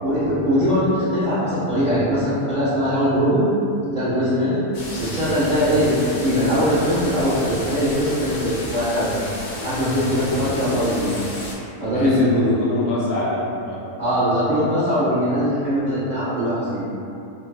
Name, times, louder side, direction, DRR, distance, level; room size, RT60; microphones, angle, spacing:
voice 1, 0.0-3.5 3.9-4.6 5.0-9.1 9.6-11.1 11.8-12.5 14.0-16.8, equal, 50° right, -13 dB, 0.5 m, -21 dB
sound 1, 4.7-11.5, left 1 dB, 65° left, 0.7 m, -33 dB
voice 2, 11.9-13.8, left 2 dB, 85° left, -6 dB, 1.1 m, -25 dB
2.5 x 2.2 x 2.3 m, 2.7 s
omnidirectional pair, 1.6 m